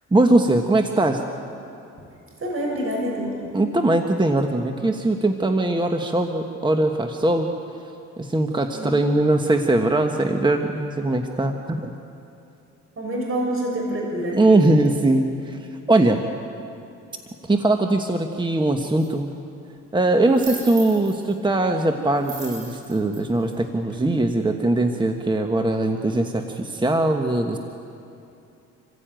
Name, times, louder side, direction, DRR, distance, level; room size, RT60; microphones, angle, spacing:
voice 1, 0.1-1.2 3.5-7.5 8.2-11.9 14.3-16.2 17.5-19.3 19.9-27.6, right 2 dB, 15° right, 5 dB, 1.3 m, -21 dB
voice 2, 2.4-3.4 8.7-8.9 13.0-14.4, right 1 dB, 45° right, -1 dB, 6.2 m, -26 dB
sound 1, 19.0-19.1 20.3-21.3 22.2-24.0, right 4 dB, 85° right, 7.7 m, -38 dB
26.5 x 15.5 x 9.1 m, 2.7 s
cardioid pair, 90°, 30 cm